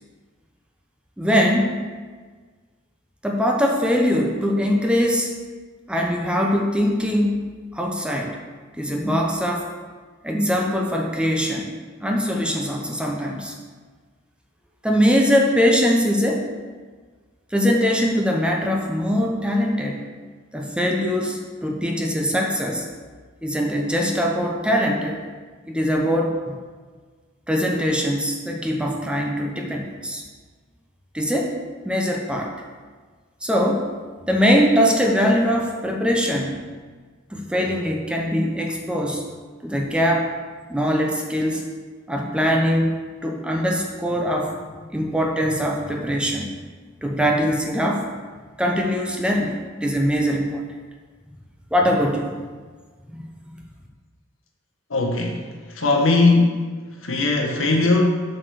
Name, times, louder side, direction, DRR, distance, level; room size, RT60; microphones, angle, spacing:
voice 1, 1.2-1.7 3.2-5.3 5.9-7.4 7.7-8.4 8.8-9.7 10.2-11.7 12.0-13.5 14.8-16.5 17.5-20.0 20.5-22.8 23.4-25.2 25.7-26.6 27.5-30.2 31.1-31.5 31.8-32.5 33.4-33.9 34.3-36.6 37.3-39.2 39.6-40.3 40.7-41.6 42.1-42.9 43.2-46.5 47.0-48.0 48.6-50.6 51.7-52.4 53.1-53.2, equal, 5° right, 0 dB, 0.8 m, -22 dB
voice 2, 54.9-55.4 55.8-56.6 57.0-58.2, left 3 dB, 70° left, 0 dB, 1.4 m, -19 dB
7.4 x 5.0 x 6.4 m, 1.5 s
head